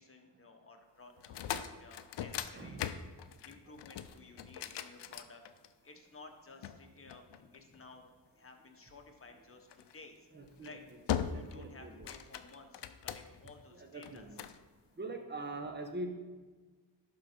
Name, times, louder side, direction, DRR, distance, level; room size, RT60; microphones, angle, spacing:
voice 1, 0.0-2.8 3.4-5.4 5.8-8.1 8.4-10.3 10.6-10.9 11.3-14.3, left 3 dB, 30° left, 4 dB, 1.2 m, -55 dB
sound 1, 1.2-5.9 6.6-7.9 9.7-10.0 10.5-10.7 11.1-11.6 11.9-13.5 14.0-14.6, left 9 dB, 70° left, 0.6 m, -40 dB
voice 2, 2.6-2.9 10.3-10.8 11.3-12.1 13.7-14.4 15.0-16.1, right 2 dB, 25° right, 5 dB, 1.0 m, -43 dB
11.5 x 4.0 x 5.1 m, 1.3 s
cardioid pair, 75°, 43 cm